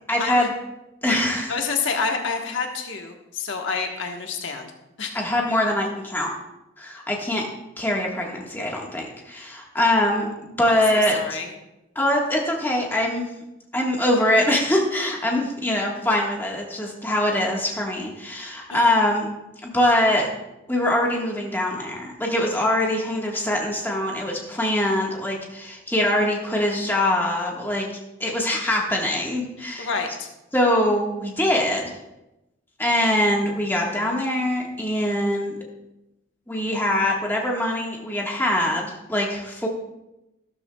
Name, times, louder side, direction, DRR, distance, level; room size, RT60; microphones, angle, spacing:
voice 1, 0.1-0.5 1.0-1.5 5.1-6.3 6.8-7.5 7.8-10.3 10.6-11.4 11.9-13.3 13.7-19.3 19.6-20.3 20.7-27.9 28.2-29.9 30.5-32.0 32.8-35.6 36.5-39.7, left 1 dB, 10° left, -1 dB, 1.5 m, -23 dB
voice 2, 1.5-4.7 5.0-5.2 10.9-11.5 18.7-19.0 29.8-30.3, left 5 dB, 75° left, 3 dB, 1.3 m, -28 dB
13.0 x 12.5 x 2.3 m, 0.93 s
head